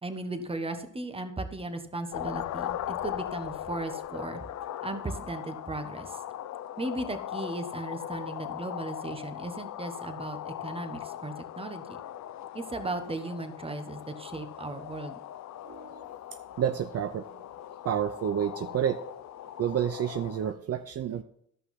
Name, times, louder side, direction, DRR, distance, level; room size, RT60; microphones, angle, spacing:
voice 1, 0.0-4.4 4.8-6.2 6.8-12.0 12.5-15.2, right 2 dB, 20° right, 8 dB, 1.3 m, -36 dB
sound 1, 2.1-20.5, left 11 dB, 65° left, 0.6 m, -39 dB
voice 2, 15.6-16.0 16.6-17.3 17.8-19.0 19.6-21.2, right 9 dB, 55° right, 10 dB, 0.6 m, -29 dB
13.5 x 5.6 x 5.8 m, 0.71 s
cardioid pair, 90°, 30 cm